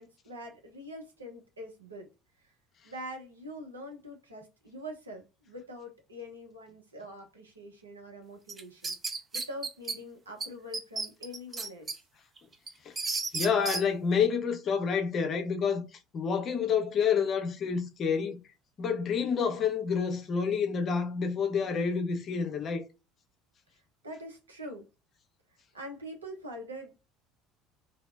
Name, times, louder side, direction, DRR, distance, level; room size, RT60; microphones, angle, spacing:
voice 1, 0.0-2.1 2.4-2.5 2.8-11.9 24.0-24.9 25.7-26.9, equal, 85° right, 0.6 m, -44 dB
sound 1, 8.5-10.0 10.4-10.5 10.7-12.0 12.4-13.8, right 4 dB, 30° right, 0.4 m, -33 dB
voice 2, 13.3-15.9 16.1-18.4 18.8-22.8, left 6 dB, 40° left, 0.6 m, -28 dB
2.6 x 2.0 x 2.4 m
figure-of-eight pair, 65°, 0 cm